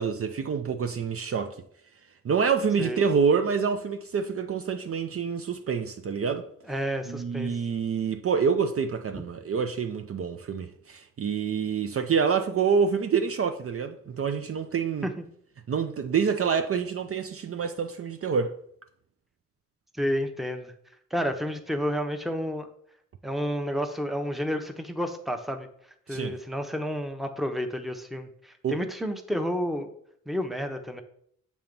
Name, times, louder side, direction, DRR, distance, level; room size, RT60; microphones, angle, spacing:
voice 1, 0.0-1.6 2.2-6.5 7.1-15.1 15.7-18.5 26.1-26.4 28.6-28.8, right 6 dB, 50° right, 0.5 m, -27 dB
voice 2, 6.6-7.5 15.0-15.2 20.0-20.7 21.1-22.7 23.2-25.7 26.1-29.9 30.3-31.0, equal, ahead, 0.7 m, -30 dB
7.2 x 2.9 x 5.3 m
cardioid pair, 85°, 29 cm